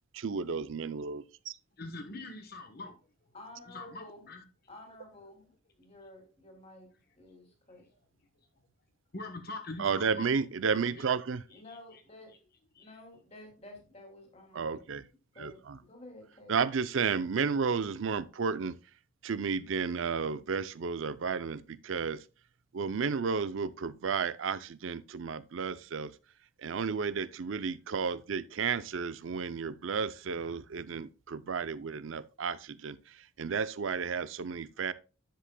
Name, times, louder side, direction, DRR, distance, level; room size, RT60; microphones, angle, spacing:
voice 1, 0.2-1.5 9.8-11.4 14.5-15.1 15.4-15.8 16.5-18.8 19.2-22.2 22.7-26.2 26.6-34.9, right 5 dB, 70° right, 0.5 m, -32 dB
voice 2, 1.8-3.0 3.7-4.4 9.1-10.3 10.7-11.0 12.8-12.9, left 2 dB, 45° left, 1.1 m, -43 dB
voice 3, 3.3-4.3 4.7-5.5 5.8-7.9 11.5-12.4 12.8-14.9 15.3-16.6, left 1 dB, 30° left, 2.6 m, -52 dB
10.0 x 7.6 x 2.2 m
head